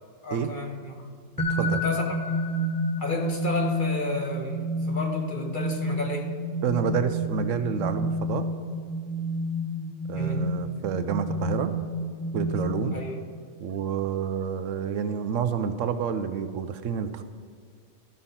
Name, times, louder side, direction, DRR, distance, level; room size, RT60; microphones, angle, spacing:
voice 1, 0.2-1.1 1.6-2.2 3.0-6.3 10.1-10.6 12.9-13.2, left 2 dB, 40° left, 1 dB, 1.2 m, -32 dB
sound 1, 1.4-13.1, equal, 20° left, 0.6 m, -30 dB
voice 2, 1.5-1.8 6.6-8.5 10.1-11.7 12.3-13.0 13.6-17.2, right 7 dB, 75° right, 10 dB, 0.9 m, -28 dB
13.0 x 5.3 x 5.6 m, 2.1 s
omnidirectional pair, 1.4 m